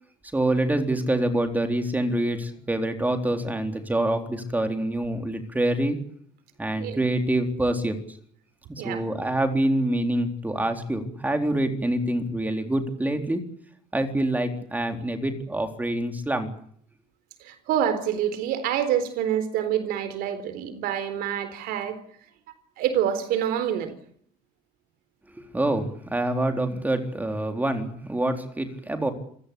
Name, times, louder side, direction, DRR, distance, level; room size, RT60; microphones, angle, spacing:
voice 1, 0.3-6.0 6.6-8.0 8.7-13.4 13.9-16.5 25.5-29.1, right 1 dB, 10° right, 4.0 m, -26 dB
voice 2, 17.4-22.0 22.8-24.0, right 9 dB, 80° right, 4.1 m, -27 dB
28.0 x 16.5 x 8.6 m
cardioid pair, 125°, 15 cm